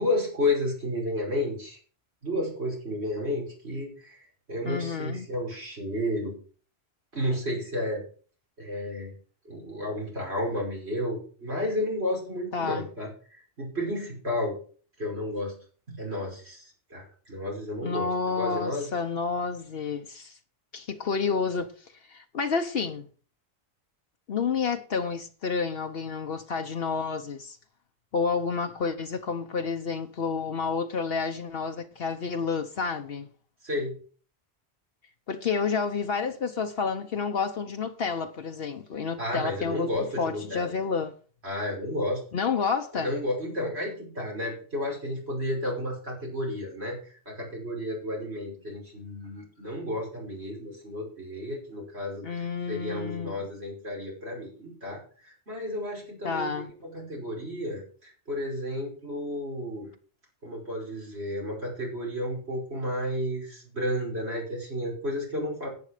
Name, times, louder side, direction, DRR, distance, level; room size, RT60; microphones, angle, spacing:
voice 1, 0.0-1.8 2.2-6.4 7.1-8.0 8.6-9.1 9.4-14.6 15.0-15.6 15.9-18.9 33.6-34.0 39.2-40.8 41.4-42.2 42.9-59.9 60.4-65.7, left 1 dB, 85° right, 5.8 m, -32 dB
voice 2, 4.6-5.3 12.5-12.9 17.8-20.4 20.7-23.1 24.3-27.6 28.1-33.3 35.3-39.9 40.2-41.1 42.3-43.1 52.2-53.4 56.2-56.7, left 5 dB, 65° left, 1.1 m, -30 dB
11.0 x 8.6 x 5.0 m
omnidirectional pair, 1.1 m